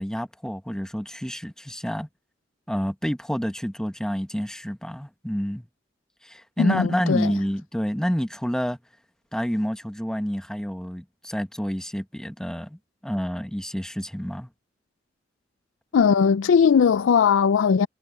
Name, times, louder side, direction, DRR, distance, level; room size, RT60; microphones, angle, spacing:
voice 1, 0.0-2.1 2.7-5.6 6.2-8.8 9.3-12.8 13.0-14.5, equal, 5° left, 1.3 m, -28 dB
voice 2, 6.6-7.4 15.9-17.9, left 6 dB, 85° left, 0.4 m, -19 dB
head